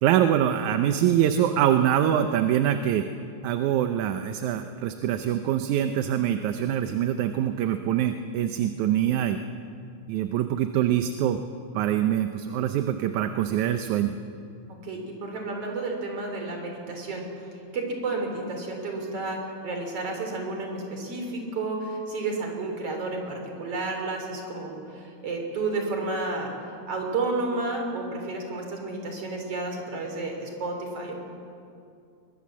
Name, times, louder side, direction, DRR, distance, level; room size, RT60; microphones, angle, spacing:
voice 1, 0.0-3.1 3.4-9.4 10.1-11.4 11.7-14.2, right 10 dB, 80° right, 8 dB, 2.2 m, -24 dB
voice 2, 14.8-17.3 17.7-26.5 26.9-31.1, right 3 dB, 50° right, 2 dB, 4.5 m, -31 dB
22.5 x 21.5 x 7.4 m, 2.5 s
omnidirectional pair, 3.5 m